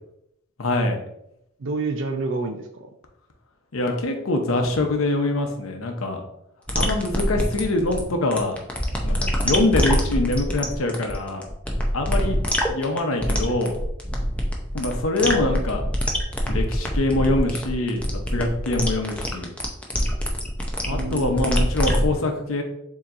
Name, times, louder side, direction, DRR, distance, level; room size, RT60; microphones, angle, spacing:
voice 1, 0.6-1.0 3.7-6.2 6.8-8.6 9.0-11.4 11.9-12.4 12.7-13.7 14.7-15.8 16.5-18.0 18.3-19.5 20.9-22.6, left 2 dB, 80° left, 4 dB, 0.8 m, -24 dB
voice 2, 1.6-2.9 12.1-12.2 18.7-18.8 20.9-21.6, right 3 dB, 60° right, 3 dB, 0.4 m, -29 dB
sound 1, 6.7-22.1, equal, 5° left, 0.5 m, -25 dB
7.0 x 2.9 x 2.5 m, 0.79 s
head